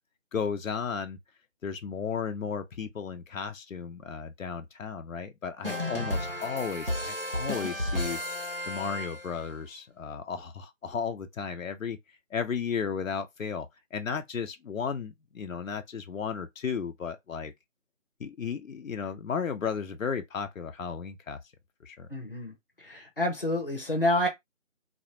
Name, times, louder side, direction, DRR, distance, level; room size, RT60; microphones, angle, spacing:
voice 1, 0.3-1.2 1.6-8.2 8.7-12.0 12.3-13.7 13.9-17.5 18.2-21.4 21.8-22.1, left 6 dB, 90° left, 0.6 m, -34 dB
sound 1, 5.6-9.5, left 1 dB, 45° right, 0.4 m, -33 dB
voice 2, 22.1-22.5 22.9-24.3, left 1 dB, 45° left, 0.7 m, -28 dB
2.1 x 2.0 x 2.9 m
figure-of-eight pair, 180°, 39 cm